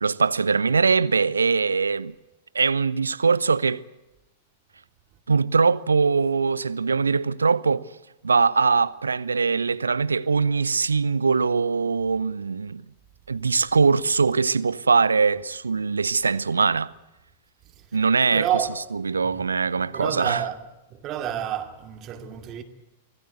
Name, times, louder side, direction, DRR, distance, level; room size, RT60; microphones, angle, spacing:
voice 1, 0.0-2.1 2.5-3.8 5.3-7.9 8.2-12.8 13.3-16.9 17.9-18.5 19.0-20.4, right 5 dB, 80° right, 0.8 m, -22 dB
voice 2, 18.3-18.8 19.2-19.5 19.8-20.6 20.9-22.6, right 10 dB, 35° right, 2.5 m, -30 dB
25.5 x 18.5 x 8.1 m
figure-of-eight pair, 100°, 0 cm